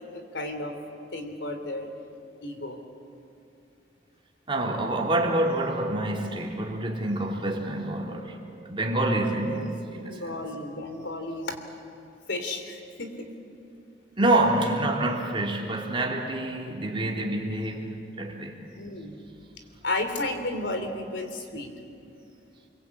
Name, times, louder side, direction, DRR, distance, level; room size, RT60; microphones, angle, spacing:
voice 1, 0.1-0.8 1.1-1.9 2.4-2.8 9.9-11.5 12.3-13.3 18.7-19.2 19.8-21.7, left 2 dB, 85° left, 6 dB, 3.3 m, -33 dB
voice 2, 4.5-8.3 8.7-10.5 14.2-18.6, right 1 dB, 30° right, -1 dB, 3.2 m, -27 dB
29.0 x 22.5 x 8.6 m, 2.5 s
head